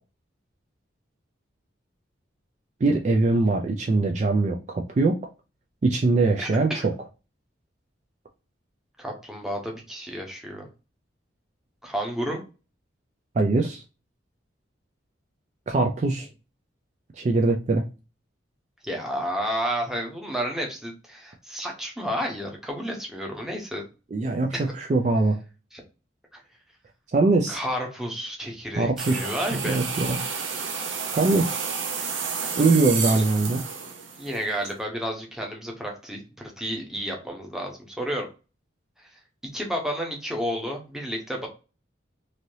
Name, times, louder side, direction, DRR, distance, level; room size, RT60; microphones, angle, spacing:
voice 1, 2.8-5.2 5.8-6.9 13.4-13.8 15.7-16.3 17.2-17.8 24.1-25.4 27.1-27.6 28.8-30.2 31.2-31.5 32.6-33.6, right 3 dB, 35° right, 3 dB, 0.3 m, -22 dB
voice 2, 6.4-6.9 9.0-10.7 11.8-12.4 18.8-23.9 24.5-24.6 25.7-25.8 26.3-26.4 27.5-29.8 34.2-38.3 39.5-41.5, equal, ahead, 0 dB, 0.8 m, -31 dB
sound 1, 29.0-34.7, right 5 dB, 75° right, 0.7 m, -31 dB
3.2 x 2.7 x 2.6 m, 0.31 s
head